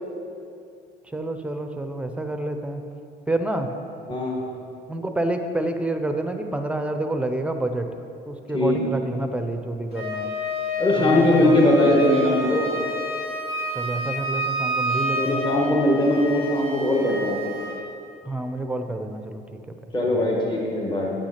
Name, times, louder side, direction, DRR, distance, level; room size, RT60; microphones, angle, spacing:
voice 1, 1.1-2.8 3.3-3.7 4.9-7.9 8.3-10.3 11.0-12.0 13.7-15.4 16.4-16.5 18.2-19.4 20.1-20.2, right 2 dB, 5° right, 6 dB, 0.6 m, -28 dB
voice 2, 4.1-4.4 8.5-8.8 10.8-12.8 15.2-17.6 19.9-21.1, left 1 dB, 30° left, -2 dB, 1.7 m, -20 dB
Wind instrument woodwind instrument, 9.9-17.8, left 1 dB, 65° left, 2.3 m, -29 dB
8.5 x 6.0 x 5.8 m, 2.5 s
cardioid pair, 110°, 17 cm